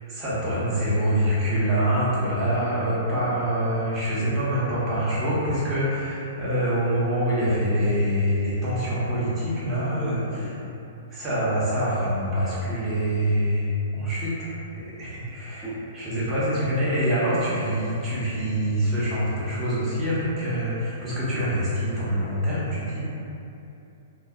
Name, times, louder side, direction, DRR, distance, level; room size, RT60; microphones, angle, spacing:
voice 1, 0.1-10.5 11.1-15.7 15.9-23.0, equal, 20° right, -10 dB, 0.8 m, -25 dB
voice 2, 9.9-10.5 15.6-15.8, equal, 5° right, -6 dB, 0.4 m, -36 dB
2.4 x 2.1 x 2.4 m, 2.8 s
figure-of-eight pair, 110°, 0 cm